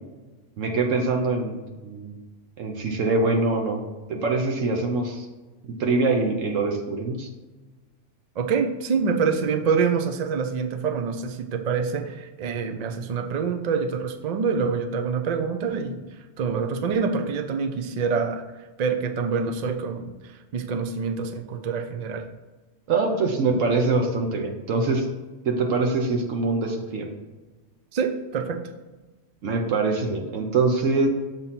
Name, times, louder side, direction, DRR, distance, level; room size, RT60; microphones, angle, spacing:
voice 1, 0.6-1.5 1.8-2.2 2.6-3.8 4.1-5.3 5.8-7.3 22.9-25.1 25.4-27.1 29.4-31.1, right 3 dB, 80° right, 2 dB, 1.1 m, -24 dB
voice 2, 8.4-16.0 16.4-18.4 18.8-22.2 27.9-28.6, right 5 dB, 60° right, 4 dB, 0.4 m, -26 dB
7.0 x 2.7 x 5.7 m, 1.2 s
omnidirectional pair, 1.3 m